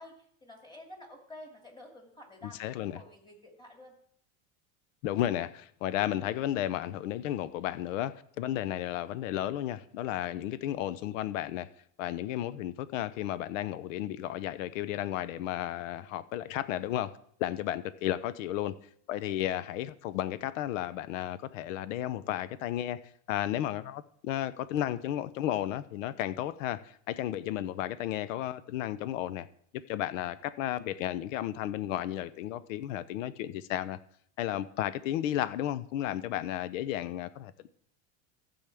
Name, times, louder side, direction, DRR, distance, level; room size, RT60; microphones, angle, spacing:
voice 1, 0.0-3.9, left 1 dB, 10° left, 2.6 m, -50 dB
voice 2, 2.6-3.0 5.0-11.7 12.0-18.8 19.1-23.0 23.3-29.5 29.9-34.0 34.4-37.7, left 12 dB, 85° left, 0.7 m, -33 dB
15.0 x 7.1 x 3.5 m
supercardioid pair, 130°, 38 cm